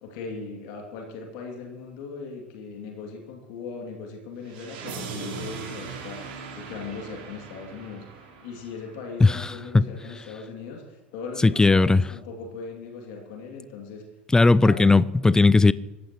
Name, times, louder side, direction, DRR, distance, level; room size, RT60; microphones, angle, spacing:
voice 1, 0.0-14.0 14.6-15.0, left 4 dB, 60° left, 2.5 m, -39 dB
sound 1, 4.5-9.4, right 5 dB, 65° right, 3.9 m, -39 dB
voice 2, 9.2-9.9 11.4-12.0 14.3-15.7, left 3 dB, 10° left, 0.5 m, -17 dB
26.0 x 15.0 x 3.0 m
figure-of-eight pair, 75°, 6 cm